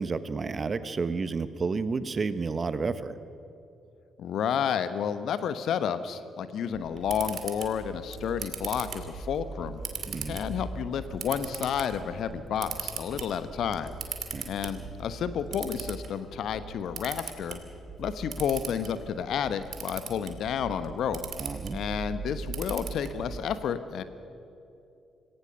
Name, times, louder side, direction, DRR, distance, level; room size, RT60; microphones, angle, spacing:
voice 1, 0.0-3.1 10.1-10.4 14.3-14.5 21.4-21.8, right 4 dB, 40° right, 13 dB, 1.2 m, -31 dB
voice 2, 4.2-9.8 10.2-14.0 14.4-17.6 18.0-21.2 21.7-24.0, left 8 dB, 60° left, 12 dB, 1.1 m, -31 dB
Camera, 6.7-23.4, right 6 dB, 55° right, 2.4 m, -40 dB
Car / Engine, 7.6-15.9, equal, 30° left, 5.9 m, -48 dB
26.5 x 17.0 x 6.9 m, 2.7 s
figure-of-eight pair, 40°, 0 cm